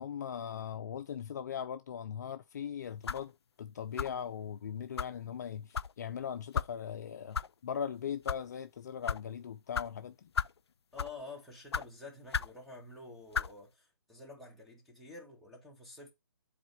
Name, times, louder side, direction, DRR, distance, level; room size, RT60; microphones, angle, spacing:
voice 1, 0.0-10.3, left 8 dB, 45° left, 0.7 m, -39 dB
sound 1, 3.1-3.3 4.0-4.3 5.0-5.1 5.7-5.9 6.5-6.7 7.3-7.5 8.1-8.4 9.1-9.2 9.7-9.9 10.4-10.6 11.0-11.2 11.7-11.9 12.3-12.6 13.3-13.5, left 6 dB, 85° left, 0.5 m, -34 dB
voice 2, 10.9-16.1, left 3 dB, ahead, 2.1 m, -49 dB
7.5 x 4.3 x 4.4 m
hypercardioid pair, 160°, 13 cm